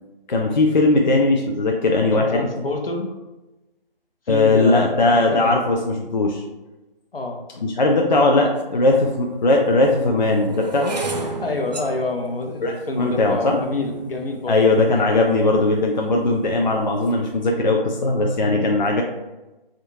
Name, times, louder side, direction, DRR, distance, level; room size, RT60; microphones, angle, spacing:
voice 1, 0.3-2.4 4.3-6.4 7.6-11.0 12.6-13.6 14.5-19.0, left 2 dB, 50° left, 0 dB, 0.5 m, -19 dB
voice 2, 2.0-3.1 4.3-5.6 7.1-7.4 11.4-14.6, left 2 dB, 75° left, 3 dB, 0.8 m, -27 dB
sound 1, 8.6-8.7 9.4-15.6 16.2-16.6 16.9-17.3, right 3 dB, 45° right, 0.5 m, -34 dB
3.6 x 3.4 x 2.8 m, 1.1 s
figure-of-eight pair, 150°, 29 cm